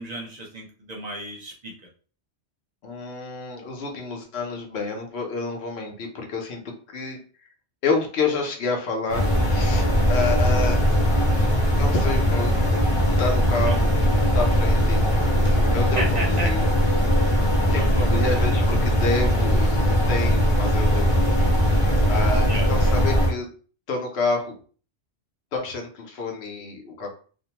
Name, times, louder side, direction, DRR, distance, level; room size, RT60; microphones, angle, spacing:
voice 1, 0.0-1.7 13.6-13.8 15.8-16.6 17.1-17.3 17.7-18.1 22.5-22.7, right 1 dB, 45° right, -1 dB, 0.6 m, -33 dB
voice 2, 2.8-6.6 6.9-7.2 7.8-10.8 11.7-12.5 13.2-13.9 14.3-16.6 17.7-23.5 23.9-24.5 25.5-27.1, left 3 dB, 65° left, 2 dB, 1.0 m, -29 dB
sound 1, 9.1-23.3, equal, 40° left, 0.5 m, -20 dB
2.5 x 2.2 x 2.8 m, 0.40 s
omnidirectional pair, 1.2 m